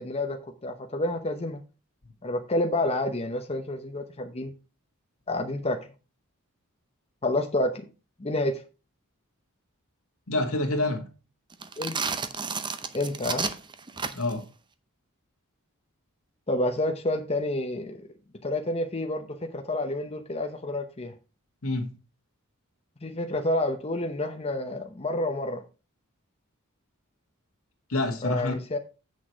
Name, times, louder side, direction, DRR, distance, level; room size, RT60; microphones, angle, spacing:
voice 1, 0.0-1.6 2.2-4.5 5.3-5.8 7.2-7.9 8.2-8.6 11.8-12.0 12.9-13.5 16.5-18.0 18.4-21.1 23.0-25.6 28.2-28.8, left 1 dB, 30° left, 0.8 m, -29 dB
voice 2, 10.3-11.0 14.1-14.5 21.6-21.9 27.9-28.5, left 2 dB, 75° left, 2.0 m, -27 dB
sound 1, 11.5-14.4, right 5 dB, 20° right, 0.6 m, -32 dB
8.2 x 6.3 x 4.6 m
head